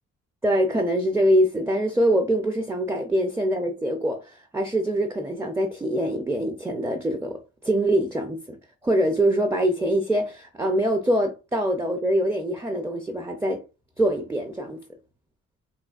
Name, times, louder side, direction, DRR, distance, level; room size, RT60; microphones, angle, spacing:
voice 1, 0.4-8.6 8.8-13.6 14.0-14.8, right 1 dB, 10° right, 0.4 m, -24 dB
4.2 x 2.2 x 2.3 m
cardioid pair, 90°, 30 cm